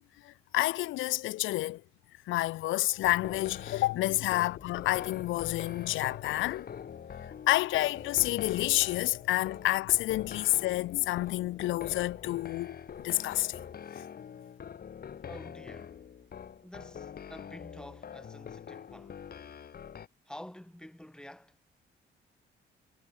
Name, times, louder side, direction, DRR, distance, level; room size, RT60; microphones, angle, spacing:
voice 1, 0.2-1.8 2.3-6.7 7.5-12.8 13.0-13.6, left 17 dB, 80° left, 0.4 m, -29 dB
sound 1, 3.0-20.1, left 8 dB, 50° left, 2.2 m, -44 dB
voice 2, 15.3-16.0 16.6-19.2 20.3-21.6, left 1 dB, 5° left, 1.3 m, -48 dB
cardioid pair, 90°, 20 cm